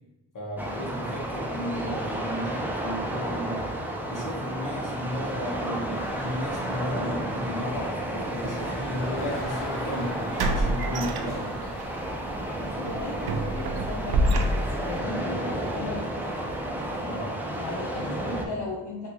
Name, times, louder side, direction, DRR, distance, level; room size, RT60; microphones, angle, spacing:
voice 1, 0.3-3.7 4.1-10.2 10.5-11.4 17.0-17.4, left 1 dB, 45° left, -4 dB, 1.4 m, -34 dB
sound 1, 0.6-18.5, right 1 dB, 5° right, 0.5 m, -32 dB
sound 2, 5.9-17.2, left 1 dB, 30° left, 1.3 m, -43 dB
sound 3, 9.3-9.4 10.4-11.8 12.2-12.4 12.9-15.0, right 1 dB, 65° right, 0.5 m, -27 dB
voice 2, 12.7-16.4 17.5-19.1, left 2 dB, 70° left, -4 dB, 0.7 m, -37 dB
3.4 x 2.7 x 2.9 m, 0.98 s
cardioid pair, 60°, 42 cm